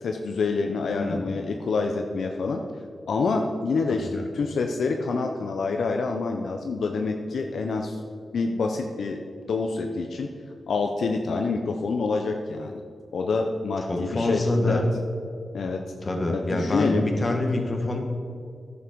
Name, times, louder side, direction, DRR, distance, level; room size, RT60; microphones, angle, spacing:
voice 1, 0.0-2.6 3.1-8.0 8.3-9.2 9.5-10.3 10.7-12.8 13.1-14.8 15.5-15.8 16.3-17.1, left 4 dB, 85° left, 3 dB, 0.6 m, -27 dB
voice 2, 0.9-1.2 3.9-4.2 13.9-14.9 16.0-18.0, left 2 dB, 40° left, 2 dB, 1.7 m, -26 dB
10.0 x 7.3 x 4.6 m, 2.3 s
cardioid pair, 60°, 0 cm